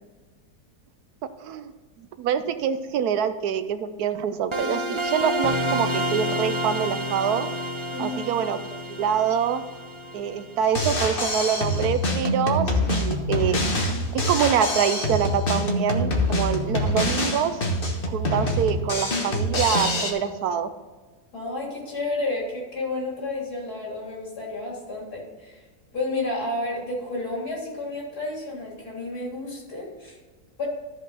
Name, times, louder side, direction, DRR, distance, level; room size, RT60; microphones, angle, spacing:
voice 1, 1.4-1.7 2.2-7.5 8.0-9.6 10.1-13.6 14.1-17.6 18.1-20.7, right 8 dB, 75° right, 11 dB, 1.1 m, -25 dB
sound 1, 4.5-11.2, equal, 40° right, 0.4 m, -29 dB
voice 2, 7.9-8.3 21.3-25.6 25.9-30.2 30.6-30.7, left 2 dB, 75° left, -4 dB, 3.6 m, -31 dB
Drum kit, 10.6-20.1, left 1 dB, 40° left, 1.2 m, -25 dB
13.5 x 5.3 x 4.0 m, 1.3 s
omnidirectional pair, 1.7 m